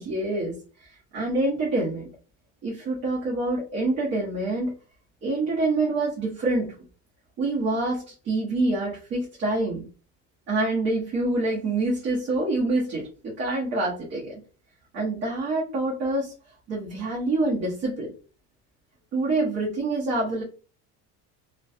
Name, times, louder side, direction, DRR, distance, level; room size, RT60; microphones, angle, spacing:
voice 1, 0.0-2.1 2.6-4.7 5.2-6.7 7.4-9.8 10.5-14.4 14.9-16.3 16.7-18.1 19.1-20.4, right 2 dB, 50° right, -5 dB, 1.2 m, -26 dB
3.1 x 2.2 x 2.7 m, 0.36 s
cardioid pair, 170°, 34 cm